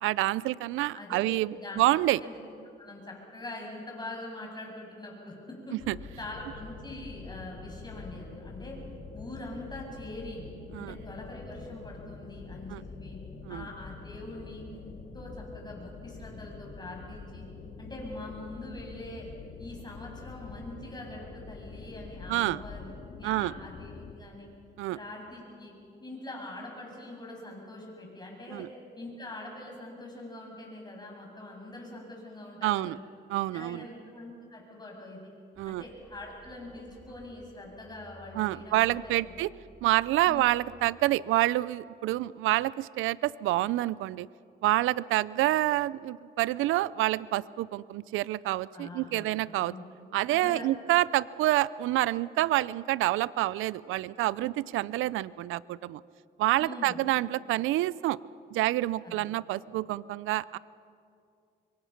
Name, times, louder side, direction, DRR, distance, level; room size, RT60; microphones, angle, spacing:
voice 1, 0.0-2.2 5.9-6.0 10.7-10.9 12.7-12.8 13.4-13.7 22.3-22.6 23.2-23.5 24.8-25.0 28.5-28.7 32.6-33.0 33.3-33.9 35.6-35.8 38.3-39.5 39.8-44.3 44.6-49.7 50.1-56.0 56.4-58.2 58.5-60.6, right 16 dB, 90° right, 20 dB, 0.5 m, -27 dB
voice 2, 0.9-1.3 1.6-1.8 2.2-2.4 2.8-5.8 6.2-8.8 9.1-10.4 10.8-13.2 13.5-17.5 17.8-19.3 19.6-22.9 23.2-24.5 24.9-25.7 26.0-28.7 29.0-33.0 33.5-35.3 35.7-39.3 40.2-40.4 48.7-49.3 49.6-49.9 50.3-50.7 56.6-57.0 59.0-59.1, left 2 dB, 20° left, -1 dB, 7.7 m, -43 dB
sound 1, 5.8-24.1, left 4 dB, 60° left, 2.2 m, -45 dB
sound 2, 35.5-40.7, equal, 5° right, 4.8 m, -55 dB
26.5 x 23.0 x 5.9 m, 2.5 s
cardioid pair, 90°, 20 cm